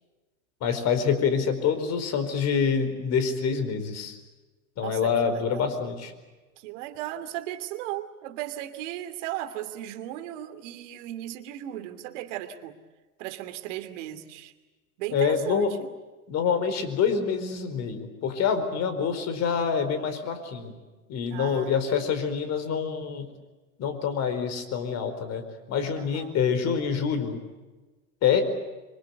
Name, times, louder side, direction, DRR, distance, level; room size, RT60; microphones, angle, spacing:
voice 1, 0.6-4.2 4.8-6.1 15.1-15.7 16.3-20.8 21.1-23.3 23.8-25.4 25.7-27.4 28.2-28.5, left 6 dB, 40° left, 9 dB, 4.7 m, -26 dB
voice 2, 4.8-5.7 6.6-12.8 13.2-14.5 15.0-15.9 21.3-22.2 26.0-26.4, right 13 dB, 60° right, 8 dB, 2.9 m, -36 dB
26.0 x 25.0 x 8.3 m, 1.2 s
hypercardioid pair, 115°, 42 cm